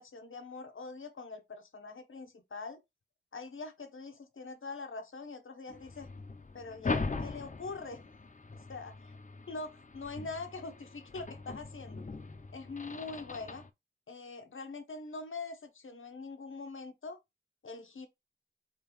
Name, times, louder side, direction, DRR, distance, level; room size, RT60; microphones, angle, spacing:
voice 1, 0.0-2.8 3.3-6.1 6.5-8.0 8.7-9.2 9.5-12.0 12.5-13.6 14.1-17.2 17.6-18.1, left 3 dB, 90° left, 0.9 m, -43 dB
sound 1, 5.7-13.7, left 3 dB, 40° left, 0.5 m, -41 dB
4.4 x 3.8 x 3.0 m
wide cardioid pair, 55°, 20 cm